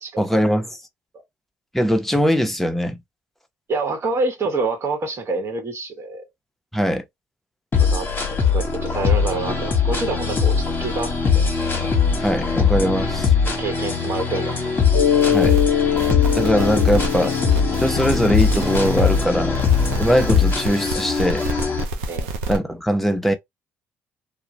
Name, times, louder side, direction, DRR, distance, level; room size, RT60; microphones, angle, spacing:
voice 1, 0.2-0.7 1.7-3.0 6.7-7.0 12.2-13.3 15.3-15.6 16.3-17.4 17.8-19.6 20.0-21.5 22.5-23.3, equal, 5° left, 0.7 m, -21 dB
voice 2, 3.7-6.2 7.9-8.1 8.5-11.4 13.6-14.6 22.1-22.3, right 3 dB, 45° right, 1.1 m, -27 dB
sound 1, 7.7-21.8, left 5 dB, 35° left, 1.0 m, -21 dB
Mallet percussion, 14.9-19.4, left 10 dB, 80° left, 0.4 m, -23 dB
sound 2, 15.2-15.6 16.0-19.2 19.5-22.6, right 2 dB, 85° right, 0.5 m, -29 dB
2.3 x 2.1 x 2.9 m
hypercardioid pair, 60°, 6 cm